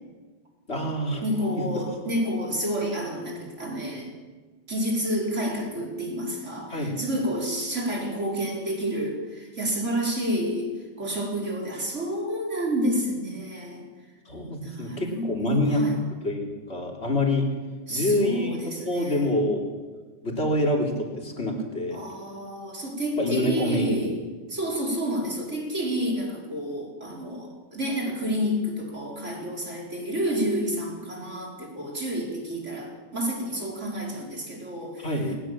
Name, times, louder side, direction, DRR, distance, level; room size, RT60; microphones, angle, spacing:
voice 1, 0.7-1.2 1.6-1.7 6.7-7.0 14.3-15.9 16.2-17.5 17.9-19.7 20.2-22.0 23.2-24.1 35.0-35.3, left 1 dB, 35° left, 0 dB, 3.8 m, -26 dB
voice 2, 1.2-4.1 4.7-13.8 14.6-16.0 17.9-19.3 21.9-24.2 24.5-35.1, equal, 45° right, -1 dB, 5.2 m, -29 dB
21.0 x 20.0 x 7.6 m, 1.3 s
omnidirectional pair, 1.8 m